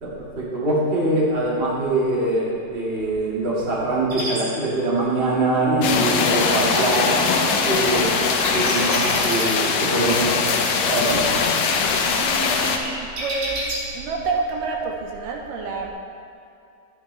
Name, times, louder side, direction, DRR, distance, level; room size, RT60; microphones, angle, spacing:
voice 1, 0.0-7.4 7.6-8.3 8.5-10.5 10.9-11.2, right 2 dB, 25° right, -6 dB, 1.4 m, -23 dB
sound 1, 4.1-4.4 8.0-10.0 10.3-11.1 11.4-11.9 12.4-13.8, right 1 dB, 55° right, 2.9 m, -30 dB
sound 2, 5.8-12.8, left 5 dB, 75° left, 2.1 m, -21 dB
voice 2, 12.2-13.7 13.9-15.9, right 4 dB, 80° right, 1 dB, 2.3 m, -28 dB
12.5 x 9.6 x 3.3 m, 2.6 s
omnidirectional pair, 4.0 m